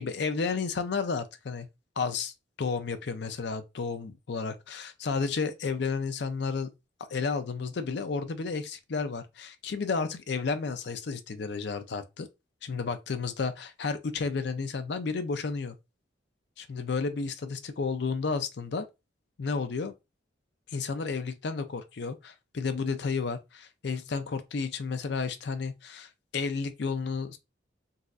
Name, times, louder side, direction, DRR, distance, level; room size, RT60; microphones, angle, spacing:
voice 1, 0.0-1.7 2.0-2.3 2.6-6.7 7.1-12.3 12.6-15.8 16.6-18.9 19.4-19.9 20.7-27.4, left 4 dB, 60° left, 0.5 m, -32 dB
4.1 x 2.4 x 2.3 m
head